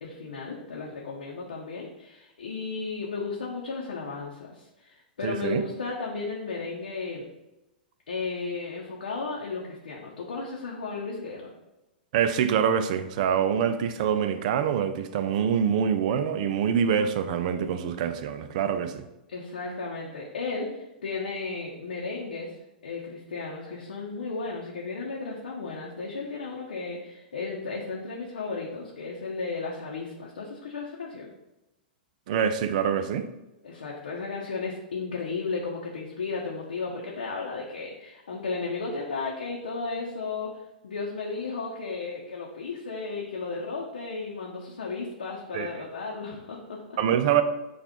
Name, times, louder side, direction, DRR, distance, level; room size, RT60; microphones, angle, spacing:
voice 1, 0.0-7.3 8.1-11.5 19.3-22.6 22.8-31.3 33.6-40.5 40.8-47.0, left 4 dB, 75° left, 0.7 m, -34 dB
voice 2, 5.2-5.6 12.1-19.1 32.3-33.3 45.5-45.8 47.0-47.4, right 8 dB, 55° right, 0.4 m, -25 dB
6.7 x 2.4 x 2.9 m
hypercardioid pair, 105°, 5 cm